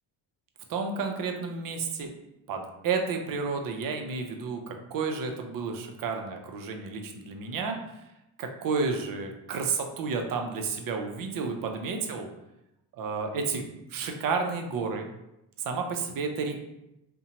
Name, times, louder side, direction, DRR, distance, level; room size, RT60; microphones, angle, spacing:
voice 1, 0.7-2.1 2.5-8.0 8.4-12.3 12.9-13.6 13.9-15.1 15.6-16.6, right 4 dB, 45° right, 4 dB, 0.5 m, -31 dB
2.6 x 2.2 x 2.8 m, 0.89 s
supercardioid pair, 85°, 48 cm